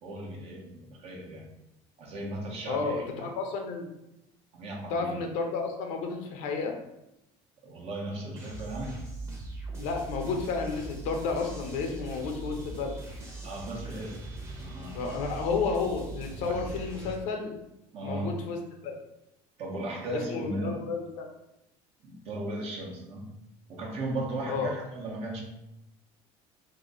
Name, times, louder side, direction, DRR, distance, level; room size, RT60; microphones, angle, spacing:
voice 1, 0.0-1.5 2.0-3.3 4.5-5.2 7.6-9.0 13.4-14.2 14.6-15.0 16.4-16.7 17.9-18.4 19.6-20.8 22.0-23.3 23.7-25.4, right 1 dB, 55° right, -2 dB, 1.0 m, -36 dB
voice 2, 2.7-3.9 4.9-6.8 9.8-12.9 14.9-17.6 18.0-19.0 20.1-21.3 24.5-24.7, left 4 dB, 75° left, 3 dB, 0.7 m, -32 dB
sound 1, 8.4-17.2, right 3 dB, 20° right, 0.9 m, -41 dB
2.8 x 2.6 x 3.9 m, 0.88 s
cardioid pair, 120°, 13 cm